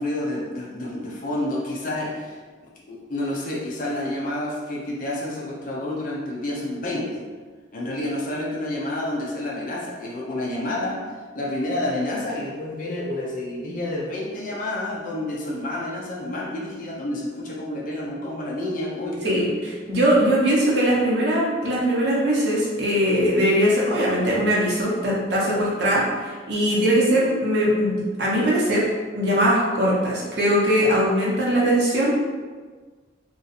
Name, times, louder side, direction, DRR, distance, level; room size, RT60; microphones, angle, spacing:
voice 1, 0.0-2.4 2.9-7.3 7.7-11.1 11.3-19.5, left 1 dB, 45° left, -3 dB, 0.5 m, -29 dB
voice 2, 19.9-28.9 29.1-32.1, equal, 60° right, -6 dB, 0.9 m, -21 dB
2.6 x 2.4 x 4.0 m, 1.4 s
head